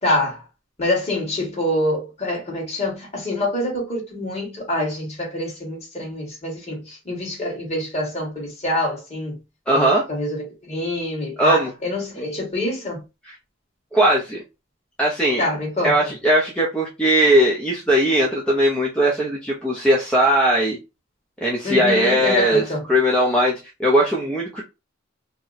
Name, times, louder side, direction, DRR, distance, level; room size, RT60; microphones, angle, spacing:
voice 1, 0.0-0.4 0.8-9.4 9.7-13.0 15.4-16.0 21.6-22.8, left 1 dB, 35° left, 1.5 m, -26 dB
voice 2, 9.7-10.0 11.4-11.7 13.9-14.4 15.0-15.4 15.8-20.8 21.4-22.6 22.9-24.6, right 1 dB, 5° left, 0.5 m, -19 dB
2.8 x 2.1 x 3.9 m
head